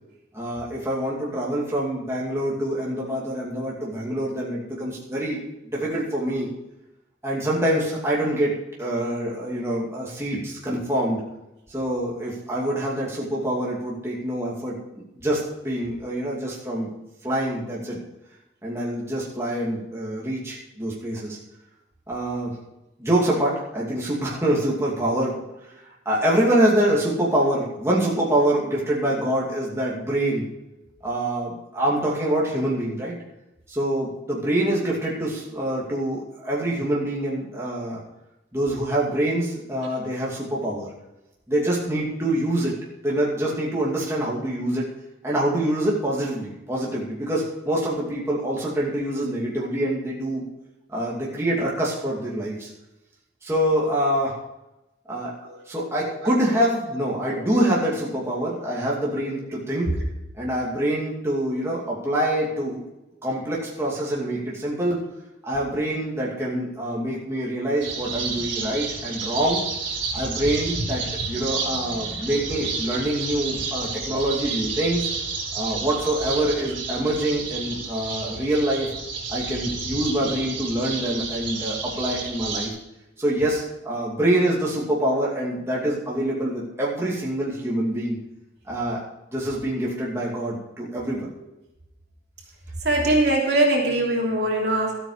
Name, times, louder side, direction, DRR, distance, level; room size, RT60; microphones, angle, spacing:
voice 1, 0.3-5.4 5.6-6.5 7.2-11.2 11.7-14.8 15.2-16.9 17.2-18.0 18.6-21.4 22.1-22.6 23.0-25.4 26.1-30.5 31.0-33.2 33.7-38.0 38.5-40.9 41.5-42.8 43.0-44.9 45.2-50.4 50.9-52.7 53.4-54.4 55.1-55.3 55.7-59.9 60.4-62.8 63.2-65.0 65.4-69.6 70.1-75.1 75.5-78.9 79.3-82.7 83.2-88.2 88.7-89.0 89.3-91.3, right 1 dB, 15° right, -5 dB, 2.5 m, -25 dB
sound 1, 67.8-82.7, right 4 dB, 75° right, 4.9 m, -31 dB
voice 2, 92.8-95.0, right 1 dB, 60° right, -2 dB, 3.1 m, -21 dB
13.0 x 9.0 x 5.0 m, 0.92 s
head